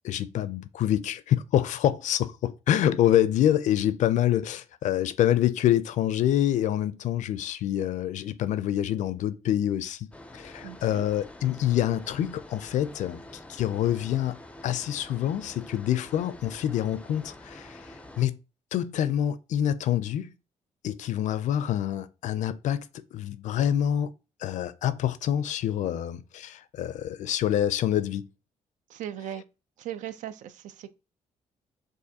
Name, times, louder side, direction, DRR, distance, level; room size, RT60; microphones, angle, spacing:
voice 1, 0.0-10.1 10.3-13.2 13.5-14.4 14.6-17.8 18.2-18.4 18.7-20.3 20.8-24.1 24.4-28.3 29.2-29.4, left 11 dB, 70° left, 0.4 m, -26 dB
sound 1, 10.1-18.3, left 1 dB, 10° left, 0.4 m, -47 dB
voice 2, 10.6-11.1 28.9-29.4 29.8-30.9, right 11 dB, 85° right, 0.5 m, -38 dB
6.4 x 2.5 x 2.7 m
cardioid pair, 105°, 13 cm